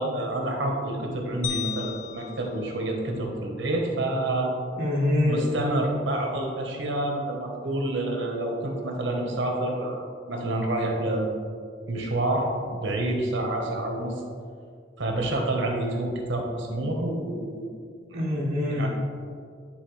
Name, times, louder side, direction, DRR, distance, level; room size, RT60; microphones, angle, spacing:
voice 1, 0.0-4.5 5.2-11.4 11.9-14.2 15.0-17.7 18.7-18.9, right 1 dB, 85° right, 0 dB, 1.1 m, -28 dB
sound 1, 1.4-3.8, left 10 dB, 40° left, 0.4 m, -37 dB
voice 2, 4.7-5.5 18.1-18.9, left 1 dB, 50° right, -9 dB, 1.2 m, -24 dB
9.8 x 3.7 x 3.2 m, 2.2 s
head